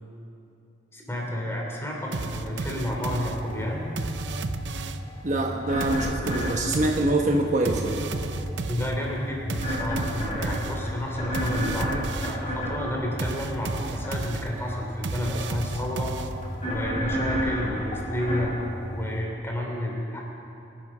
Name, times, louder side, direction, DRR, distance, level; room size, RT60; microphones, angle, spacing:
voice 1, 0.9-3.9 8.7-16.3 16.6-18.5 18.9-20.2, left 1 dB, 15° left, -2 dB, 3.1 m, -31 dB
sound 1, 2.1-5.2 5.8-12.5 13.2-16.7, right 3 dB, 80° right, 0.7 m, -34 dB
sound 2, 3.3-19.2, equal, 40° left, 4.1 m, -33 dB
voice 2, 5.2-8.0, right 2 dB, 45° right, 1 dB, 1.1 m, -24 dB
23.5 x 10.0 x 6.2 m, 2.8 s
head